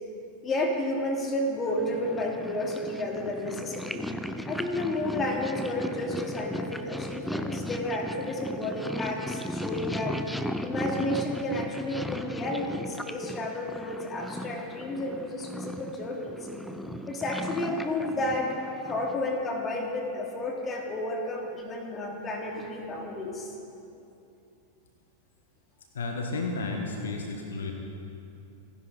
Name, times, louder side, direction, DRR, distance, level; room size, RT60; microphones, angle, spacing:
voice 1, 0.4-4.0 4.5-10.2 10.6-16.5 17.1-18.6 18.8-23.6, left 1 dB, 25° left, 1 dB, 2.5 m, -31 dB
Purr, 1.7-19.3, equal, ahead, 0.7 m, -36 dB
voice 2, 25.9-27.7, left 3 dB, 65° left, 3 dB, 1.4 m, -32 dB
27.0 x 10.5 x 4.0 m, 2.8 s
figure-of-eight pair, 90°, 0 cm